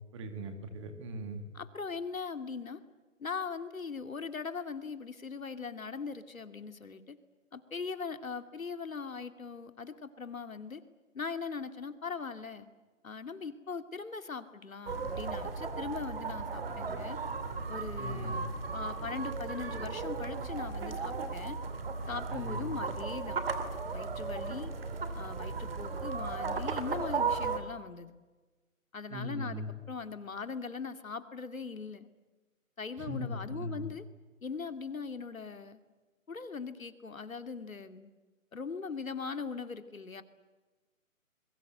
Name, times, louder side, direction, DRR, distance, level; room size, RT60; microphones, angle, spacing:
voice 1, 0.1-1.4 18.0-18.4 22.3-22.7 29.1-29.7 33.0-33.9, equal, 20° right, 7 dB, 2.5 m, -39 dB
voice 2, 1.5-2.8 3.2-7.2 7.5-10.8 11.1-12.7 13.0-17.2 17.7-18.4 18.7-21.6 22.1-23.4 23.9-24.7 25.1-28.1 28.9-32.1 32.8-34.0 34.4-35.8 36.3-38.1 38.5-40.2, left 5 dB, 75° left, 10 dB, 2.5 m, -40 dB
sound 1, 14.9-27.6, right 4 dB, 45° right, 2.9 m, -36 dB
27.0 x 23.0 x 7.9 m, 1.2 s
figure-of-eight pair, 160°, 41 cm